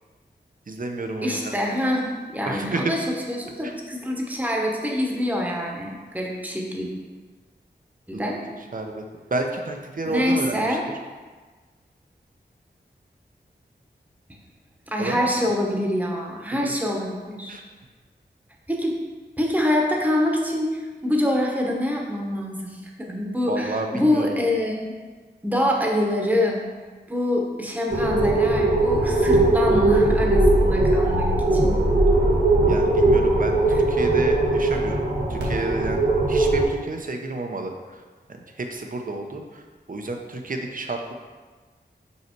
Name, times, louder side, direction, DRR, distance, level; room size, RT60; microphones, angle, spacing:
voice 1, 0.7-1.5 2.5-2.8 3.6-3.7 8.1-8.4 8.7-9.0 9.3-10.8 15.0-15.3 16.6-16.7 17.5-17.6 23.5-24.3 32.7-35.0 35.3-38.0 38.3-39.6 39.9-41.1, right 2 dB, 50° right, 3 dB, 0.8 m, -31 dB
voice 2, 1.2-3.0 3.3-6.9 8.1-8.4 10.0-10.8 14.9-17.5 18.7-18.9 19.4-24.9 25.4-26.6 27.1-31.2 31.5-31.8, left 1 dB, 10° right, -1 dB, 1.2 m, -25 dB
sound 1, 27.9-36.6, right 2 dB, 70° right, 1.8 m, -19 dB
5.6 x 5.6 x 4.6 m, 1.4 s
wide cardioid pair, 90°, 18 cm